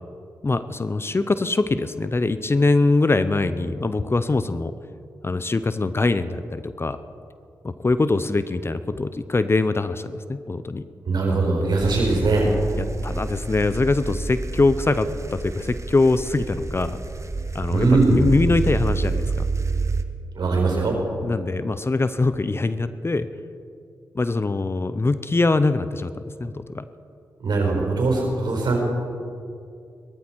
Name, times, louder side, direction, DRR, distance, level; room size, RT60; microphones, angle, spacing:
voice 1, 0.4-4.7 5.2-7.0 7.6-10.8 12.8-17.0 17.5-19.5 21.2-23.3 24.1-26.8, left 3 dB, 30° left, 13 dB, 0.7 m, -23 dB
voice 2, 11.0-12.5 17.7-18.2 20.3-21.0 27.4-28.8, right 3 dB, 65° right, 0 dB, 4.6 m, -20 dB
sound 1, 11.8-20.0, right 3 dB, 40° right, 1.1 m, -29 dB
18.0 x 14.0 x 4.6 m, 2.5 s
supercardioid pair, 40°, 8 cm